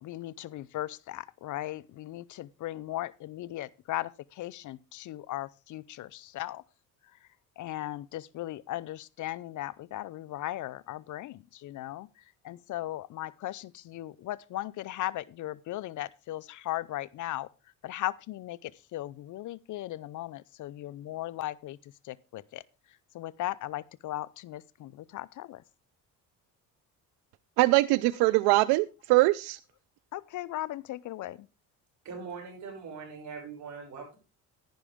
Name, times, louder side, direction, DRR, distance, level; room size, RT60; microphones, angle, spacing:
voice 1, 0.0-6.6 7.6-17.5 17.8-22.6 23.1-25.6 30.1-31.5, left 15 dB, 55° left, 0.5 m, -37 dB
voice 2, 27.6-29.6, right 20 dB, 85° right, 0.5 m, -23 dB
voice 3, 32.0-34.2, right 5 dB, 50° right, 6.2 m, -41 dB
11.0 x 10.5 x 3.5 m
cardioid pair, 110°, 37 cm